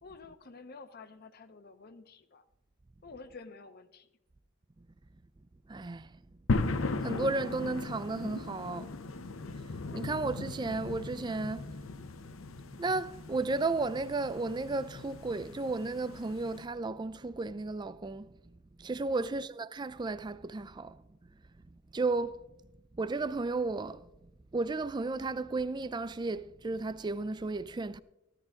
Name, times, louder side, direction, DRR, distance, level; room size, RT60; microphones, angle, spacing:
voice 1, 0.0-2.4 3.0-4.1 19.1-19.4, left 4 dB, 50° left, 0.8 m, -50 dB
voice 2, 5.7-6.1 7.0-8.9 9.9-11.7 12.8-18.3 18.8-21.0 21.9-22.4 22.9-24.1 24.5-28.0, right 3 dB, 20° right, 0.4 m, -33 dB
sound 1, 6.5-16.7, left 3 dB, 85° left, 0.7 m, -37 dB
14.5 x 11.0 x 3.7 m
head